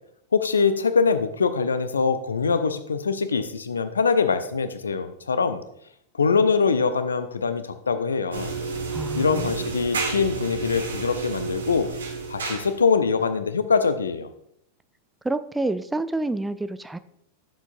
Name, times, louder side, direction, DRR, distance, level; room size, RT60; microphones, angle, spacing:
voice 1, 0.3-5.6 6.2-8.5 9.1-11.9 12.3-14.3, left 5 dB, 70° left, 11 dB, 0.7 m, -23 dB
sound 1, 8.3-13.0, right 4 dB, 70° right, 1.5 m, -31 dB
voice 2, 8.9-9.5 15.2-17.0, right 2 dB, 5° right, 13 dB, 0.4 m, -28 dB
13.0 x 7.2 x 2.6 m, 0.73 s
figure-of-eight pair, 90°, 0 cm